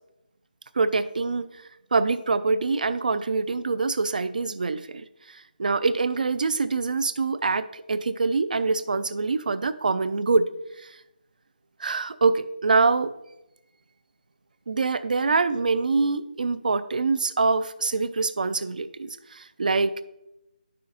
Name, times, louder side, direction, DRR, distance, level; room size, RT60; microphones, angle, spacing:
voice 1, 0.8-1.5 1.9-5.0 5.6-10.5 11.8-13.1 14.7-20.0, right 4 dB, 60° right, 13 dB, 0.4 m, -24 dB
11.5 x 5.7 x 2.5 m, 0.91 s
figure-of-eight pair, 165°, 5 cm